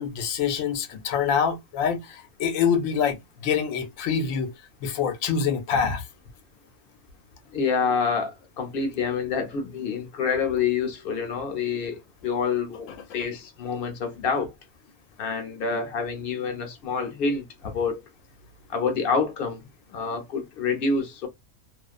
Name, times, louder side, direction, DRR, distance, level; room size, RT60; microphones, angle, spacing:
voice 1, 0.0-4.5 4.8-6.0, left 7 dB, 80° left, 1.0 m, -25 dB
voice 2, 7.5-12.9 13.1-14.5 15.2-18.0 18.7-21.3, left 5 dB, 55° left, 0.8 m, -27 dB
2.5 x 2.1 x 2.4 m
omnidirectional pair, 1.4 m